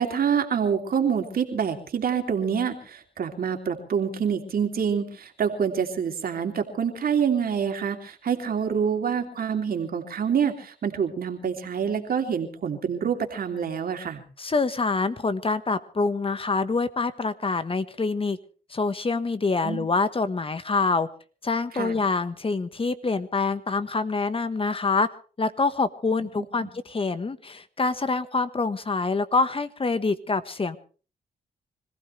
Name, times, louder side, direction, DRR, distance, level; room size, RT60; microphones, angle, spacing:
voice 1, 0.0-14.2 19.6-19.9 21.7-22.0 26.6-26.7, right 7 dB, 65° right, 4 dB, 3.0 m, -26 dB
voice 2, 14.4-18.4 18.7-21.1 21.4-25.1 25.4-30.8, left 3 dB, 35° left, 12 dB, 1.3 m, -26 dB
25.5 x 15.5 x 3.3 m, 0.39 s
cardioid pair, 65°, 17 cm